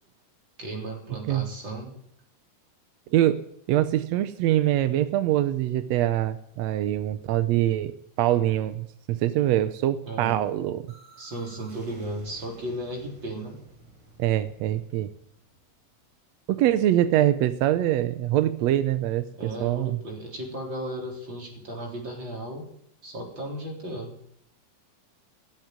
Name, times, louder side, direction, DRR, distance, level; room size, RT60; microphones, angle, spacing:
voice 1, 0.6-1.9 10.1-10.5 11.2-13.6 19.4-22.7 23.0-24.1, right 1 dB, 35° right, 0 dB, 4.2 m, -35 dB
voice 2, 3.7-7.9 8.2-10.9 14.2-15.1 16.5-20.0, right 13 dB, 80° right, 12 dB, 1.5 m, -24 dB
sound 1, 10.9-16.6, right 2 dB, 50° right, 4.7 m, -53 dB
17.0 x 7.5 x 9.2 m, 0.71 s
omnidirectional pair, 3.8 m